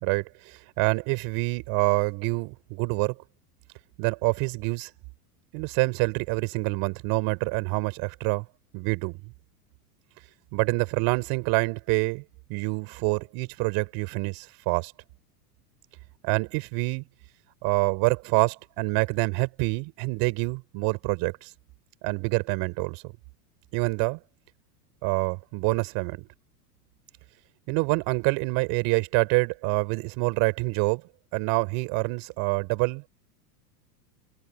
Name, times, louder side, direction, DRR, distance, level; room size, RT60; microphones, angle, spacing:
voice 1, 0.0-3.1 4.0-4.9 5.5-8.4 8.7-9.2 10.5-12.2 12.5-14.9 16.2-17.0 17.6-21.5 22.0-23.0 23.7-24.2 25.0-26.2 27.7-31.0 31.3-33.1, right 29 dB, 55° right, 5.0 m, -26 dB
hypercardioid pair, 115°, 47 cm